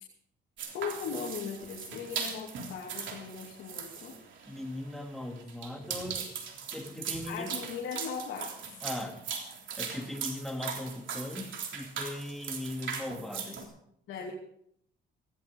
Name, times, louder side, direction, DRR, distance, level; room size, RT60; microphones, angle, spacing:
sound 1, 0.6-13.6, right 6 dB, 70° right, 3.4 m, -39 dB
voice 1, 0.7-4.1 7.3-8.8 14.1-14.3, left 6 dB, 80° left, -2 dB, 2.6 m, -38 dB
voice 2, 4.5-6.4 6.7-7.5 8.8-9.2 9.8-13.7, left 1 dB, ahead, 2 dB, 2.8 m, -39 dB
17.0 x 16.5 x 3.8 m, 0.72 s
cardioid pair, 90°, 20 cm